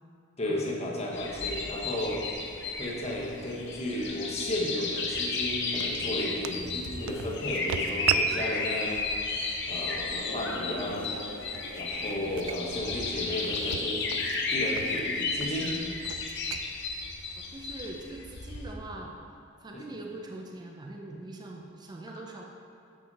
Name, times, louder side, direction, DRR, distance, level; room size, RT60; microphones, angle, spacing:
voice 1, 0.4-2.2 2.8-9.1 9.7-11.2 11.8-15.7 19.7-19.8 22.1-22.2, left 1 dB, 30° left, -3 dB, 1.2 m, -34 dB
sound 1, 1.1-18.7, left 3 dB, 60° left, 0.8 m, -33 dB
sound 2, 2.0-18.1, right 9 dB, 80° right, 0.3 m, -39 dB
sound 3, 10.2-14.2, left 1 dB, 85° left, 1.1 m, -44 dB
voice 2, 17.4-19.1 19.6-22.4, right 2 dB, 20° right, 0 dB, 0.5 m, -42 dB
7.0 x 5.8 x 4.1 m, 2.7 s
head